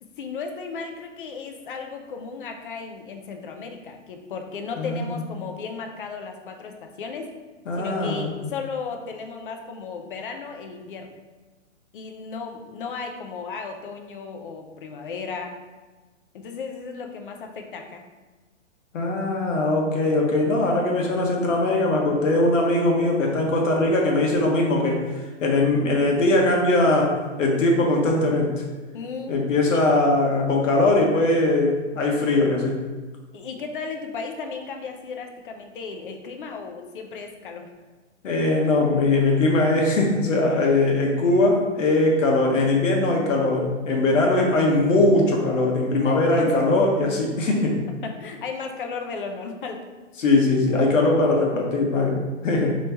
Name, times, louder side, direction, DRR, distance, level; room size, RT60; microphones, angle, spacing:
voice 1, 0.0-7.3 7.7-11.2 11.9-15.5 16.3-18.0 28.9-29.3 29.7-29.8 33.3-37.7 46.0-46.5 47.9-49.9, left 5 dB, 45° left, 4 dB, 0.4 m, -35 dB
voice 2, 4.8-5.1 7.7-8.5 18.9-28.5 29.3-32.8 38.2-47.8 50.2-52.8, left 2 dB, 90° left, 0 dB, 1.0 m, -21 dB
3.0 x 2.9 x 3.3 m, 1.3 s
hypercardioid pair, 165°, 37 cm